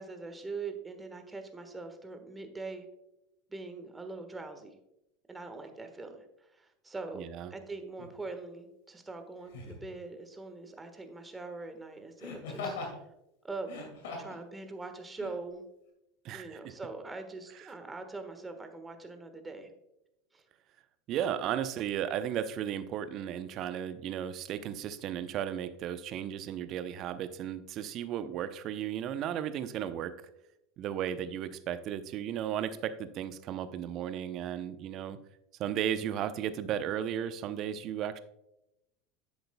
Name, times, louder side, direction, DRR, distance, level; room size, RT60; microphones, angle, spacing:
voice 1, 0.0-2.8 3.5-4.8 5.3-7.2 7.5-12.8 13.4-13.7 14.2-15.6 16.3-19.7 20.3-20.4, right 3 dB, 15° right, 6 dB, 1.4 m, -42 dB
voice 2, 7.1-7.5 16.2-16.6 17.6-17.7 21.1-30.1 30.8-35.2 35.6-38.2, right 10 dB, 50° right, 12 dB, 0.7 m, -35 dB
Laughter, 8.0-8.2 9.5-9.9 12.2-13.0 13.6-14.4 15.2-15.3, left 3 dB, 70° left, 2.3 m, -40 dB
10.5 x 7.9 x 2.2 m, 0.86 s
hypercardioid pair, 85°, 0 cm